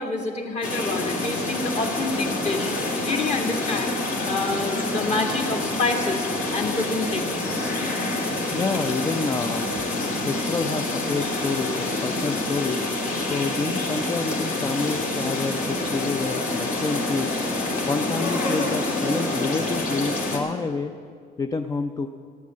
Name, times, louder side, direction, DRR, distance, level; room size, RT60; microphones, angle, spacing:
voice 1, 0.0-2.7 3.0-3.9 4.2-6.3 6.5-7.7, left 3 dB, 40° left, 2 dB, 1.9 m, -27 dB
sound 1, 0.6-20.4, left 2 dB, 60° left, 2.6 m, -27 dB
voice 2, 8.5-9.7 10.2-12.9 13.2-17.4 17.9-20.9 21.4-22.1, left 4 dB, 20° left, 7 dB, 0.5 m, -28 dB
12.0 x 9.5 x 7.5 m, 2.2 s
cardioid pair, 110°, 17 cm